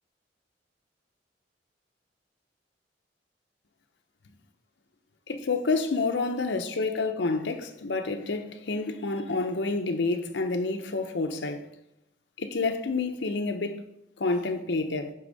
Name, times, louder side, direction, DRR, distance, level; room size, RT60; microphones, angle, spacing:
voice 1, 5.3-11.6 12.4-13.8 14.2-15.1, left 3 dB, 75° left, 0.7 m, -28 dB
8.8 x 3.5 x 5.2 m
head